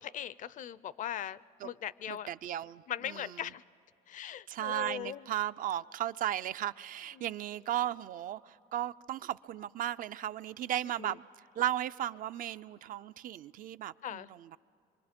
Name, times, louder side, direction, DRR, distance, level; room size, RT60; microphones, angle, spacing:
voice 1, 0.0-2.3 2.9-3.6 4.1-5.2 7.2-7.3 11.0-11.2 14.0-14.3, left 10 dB, 50° left, 19 dB, 0.5 m, -40 dB
voice 2, 2.1-3.4 4.5-11.3 11.6-14.6, right 12 dB, 55° right, 14 dB, 0.4 m, -36 dB
25.0 x 24.0 x 5.2 m, 2.7 s
cardioid pair, 110°, 17 cm